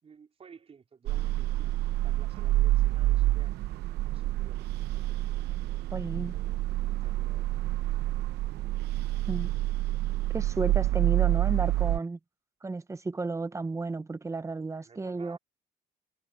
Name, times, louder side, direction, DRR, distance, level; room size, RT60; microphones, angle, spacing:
voice 1, 0.0-1.7 2.0-3.8 4.1-5.0 6.1-6.6 6.9-8.1 14.8-15.4, right 6 dB, 35° right, 4.1 m, -55 dB
sound 1, 1.1-12.0, right 16 dB, 85° right, 0.8 m, -28 dB
voice 2, 5.9-6.4 9.3-9.5 10.3-12.2 12.6-15.4, right 3 dB, 15° right, 1.0 m, -33 dB
cardioid pair, 110°, 17 cm